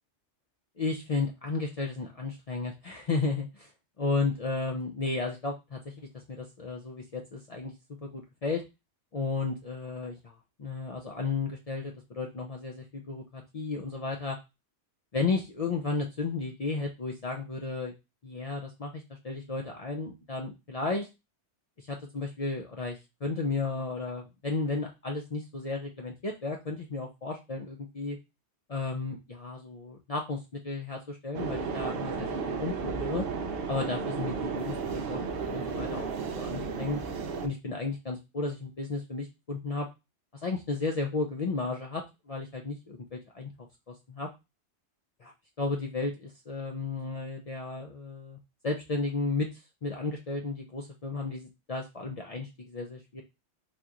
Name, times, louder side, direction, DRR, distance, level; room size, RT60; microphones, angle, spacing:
voice 1, 0.8-3.7 4.0-7.7 8.0-8.6 9.1-14.4 15.1-17.9 18.2-21.1 21.9-28.2 28.7-33.2 33.7-36.1 36.4-37.0 37.4-39.9 40.4-44.3 45.2-45.3 45.6-48.4 48.6-49.5 49.8-53.2, left 3 dB, 50° left, 1 dB, 0.4 m, -33 dB
sound 1, 31.3-37.5, right 5 dB, 65° right, 0.7 m, -33 dB
4.0 x 2.9 x 2.4 m, 0.25 s
omnidirectional pair, 1.2 m